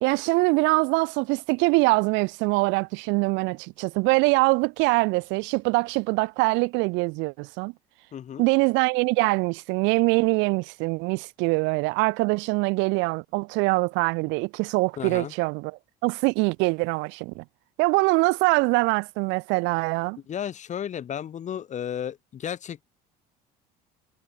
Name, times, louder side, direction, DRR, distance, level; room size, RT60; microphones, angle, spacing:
voice 1, 0.0-7.7 8.4-17.4 17.8-20.2, right 27 dB, 75° right, 0.5 m, -23 dB
voice 2, 8.1-8.5 15.0-15.3 20.3-22.8, left 9 dB, 40° left, 0.9 m, -33 dB
supercardioid pair, 90°, 19 cm